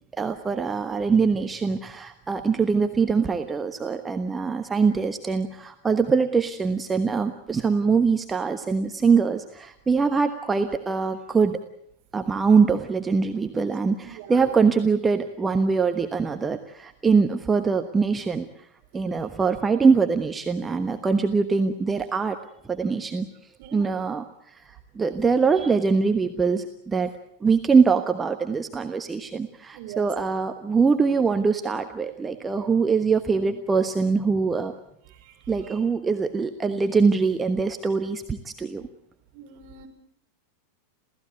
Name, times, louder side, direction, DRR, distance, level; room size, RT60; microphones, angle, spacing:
voice 1, 0.2-11.6 12.1-18.5 18.9-22.4 22.7-23.3 23.7-24.2 25.0-27.1 27.4-34.7 35.5-38.9, right 5 dB, 15° right, 7 dB, 1.2 m, -23 dB
voice 2, 14.0-14.5 17.0-17.1 23.6-23.9 29.7-30.1 35.1-35.5 39.3-39.9, right 8 dB, 50° right, 4 dB, 5.1 m, -42 dB
28.0 x 17.0 x 8.3 m, 0.78 s
figure-of-eight pair, 90°, 0 cm